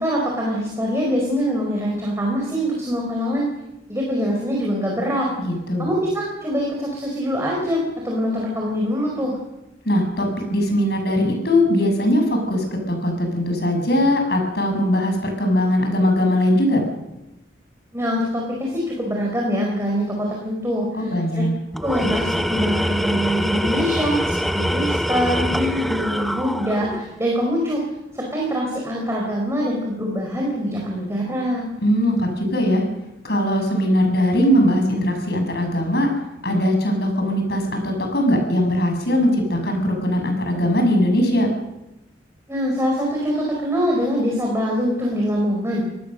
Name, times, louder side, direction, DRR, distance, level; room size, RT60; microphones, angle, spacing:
voice 1, 0.0-3.5 3.9-5.3 5.8-9.4 17.9-21.4 21.8-27.8 28.1-31.7 42.5-45.8, equal, 15° right, -2 dB, 4.7 m, -24 dB
voice 2, 5.4-5.9 9.8-16.8 21.0-21.5 31.8-32.9 33.2-36.1 36.4-41.5, left 1 dB, 55° left, 3 dB, 6.9 m, -20 dB
Tools, 21.7-27.1, equal, ahead, 0.7 m, -24 dB
26.0 x 18.5 x 6.6 m, 0.93 s
head